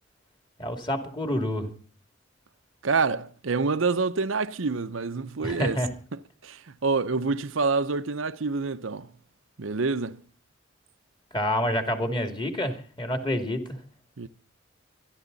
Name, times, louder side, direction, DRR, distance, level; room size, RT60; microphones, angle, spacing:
voice 1, 0.6-1.7 5.4-5.9 11.3-13.6, left 1 dB, 25° left, 2.6 m, -28 dB
voice 2, 2.8-5.8 6.1-9.1 9.6-10.2 14.2-14.3, right 4 dB, 80° right, 0.8 m, -27 dB
24.5 x 12.0 x 4.0 m
head